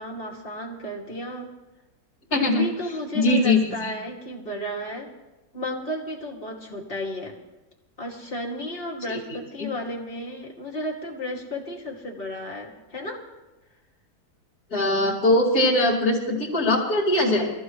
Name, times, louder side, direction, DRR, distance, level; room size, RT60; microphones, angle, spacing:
voice 1, 0.0-1.5 2.3-5.1 5.5-7.3 8.0-13.2, left 1 dB, 35° left, -1 dB, 2.6 m, -33 dB
voice 2, 2.3-2.6 3.1-3.9 9.1-9.2 9.6-9.7 14.7-17.5, left 1 dB, 70° left, -4 dB, 2.9 m, -21 dB
23.0 x 14.5 x 3.1 m, 1.1 s
omnidirectional pair, 1.7 m